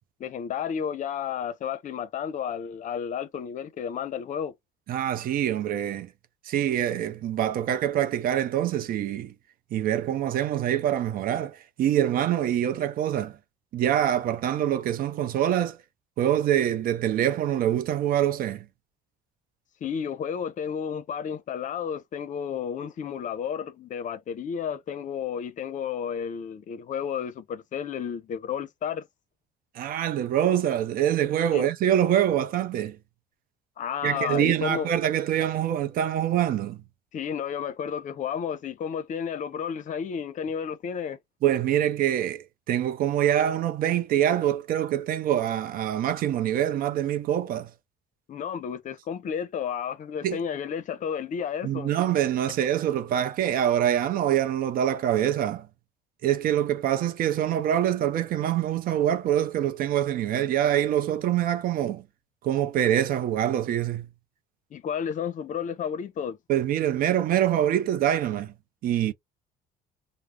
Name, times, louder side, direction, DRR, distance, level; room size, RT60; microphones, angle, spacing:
voice 1, 0.2-4.5 19.8-29.1 31.5-31.7 33.8-34.9 37.1-41.2 48.3-51.9 64.7-66.4, left 7 dB, 50° left, 0.6 m, -32 dB
voice 2, 4.9-6.1 6.5-9.3 9.7-13.4 13.7-15.8 16.2-18.7 29.8-33.0 34.0-36.8 41.4-47.7 50.2-50.4 51.6-55.7 56.2-62.0 62.4-64.1 66.5-68.5 68.8-69.1, right 11 dB, 60° right, 0.5 m, -25 dB
2.3 x 2.0 x 3.2 m
cardioid pair, 95°, 17 cm